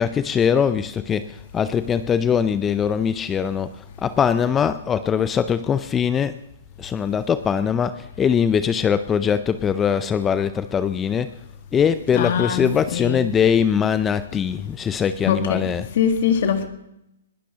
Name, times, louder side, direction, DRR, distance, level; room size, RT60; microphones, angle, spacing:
voice 1, 0.0-6.4 6.8-11.4 11.7-15.9, left 7 dB, 15° left, 0.5 m, -22 dB
voice 2, 12.1-13.3 15.2-16.7, left 7 dB, 55° left, 1.8 m, -23 dB
20.5 x 17.5 x 2.9 m
hypercardioid pair, 140°, 0 cm